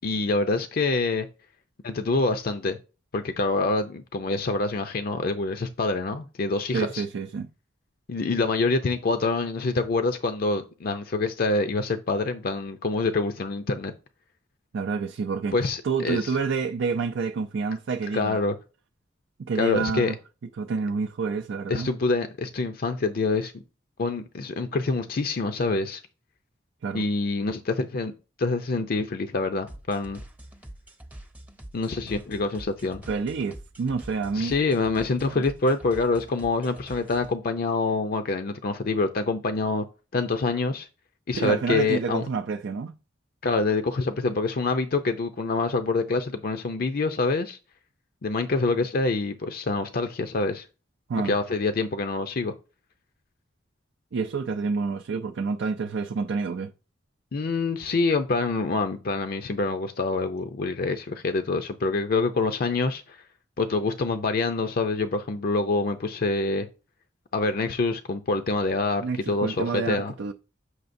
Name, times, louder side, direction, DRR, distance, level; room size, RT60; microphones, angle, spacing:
voice 1, 0.0-1.3 1.8-2.8 3.1-7.0 8.1-13.9 15.5-16.3 18.1-18.6 19.6-20.1 21.7-23.6 24.0-26.0 26.9-30.2 31.7-33.0 34.3-39.8 40.1-40.9 41.3-42.2 43.4-47.6 48.2-50.7 51.2-52.5 57.3-63.2 63.6-66.7 67.3-70.1, left 3 dB, 55° left, 0.5 m, -26 dB
voice 2, 6.7-7.5 14.7-15.5 15.8-18.4 19.4-20.2 20.6-21.9 26.8-27.0 33.1-34.5 35.3-35.4 41.3-42.9 51.1-51.3 54.1-56.7 69.0-70.3, right 5 dB, 85° right, 0.4 m, -28 dB
sound 1, 29.7-37.3, right 1 dB, 10° right, 0.6 m, -45 dB
7.9 x 5.7 x 2.6 m
head